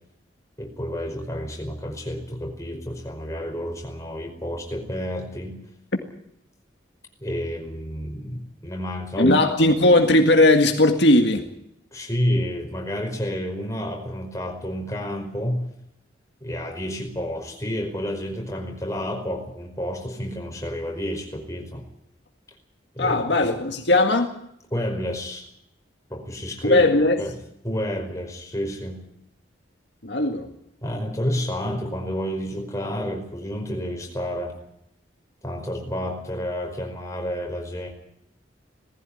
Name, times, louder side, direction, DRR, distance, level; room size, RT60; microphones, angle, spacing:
voice 1, 0.6-5.6 7.2-9.4 11.9-15.6 16.4-21.8 23.0-23.2 24.7-25.5 26.1-26.8 27.2-27.4 27.6-29.0 30.8-34.5 35.4-37.9, equal, 15° left, 5.2 m, -30 dB
voice 2, 9.2-11.4 23.0-24.3 26.6-27.2 30.0-30.5, left 2 dB, 70° left, 1.9 m, -18 dB
19.5 x 15.5 x 10.0 m
head